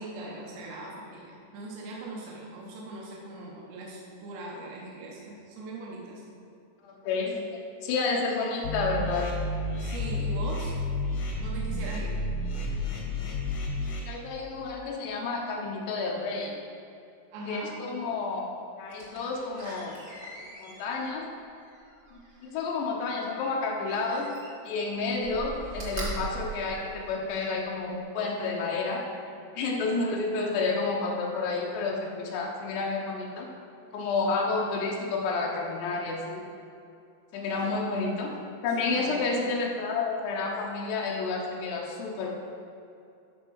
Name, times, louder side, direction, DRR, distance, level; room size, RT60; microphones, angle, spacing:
voice 1, 0.0-6.2 9.8-10.7 11.4-12.2 17.3-17.7 37.6-37.7 38.8-39.4, right 2 dB, 80° right, -3 dB, 3.3 m, -40 dB
voice 2, 6.8-9.3 14.1-16.5 17.5-18.5 18.7-20.0 20.5-21.3 22.4-24.3 24.7-29.1 29.5-33.5 33.9-36.4 37.3-38.3 38.6-42.4, left 3 dB, 85° left, -2 dB, 3.1 m, -30 dB
sound 1, 8.6-14.0, left 1 dB, 60° left, 1.7 m, -31 dB
Slam, 18.9-22.7 23.8-24.8 25.1-27.4 27.9-28.0, right 2 dB, 60° right, 0.9 m, -40 dB
12.5 x 4.5 x 6.3 m, 2.6 s
omnidirectional pair, 4.8 m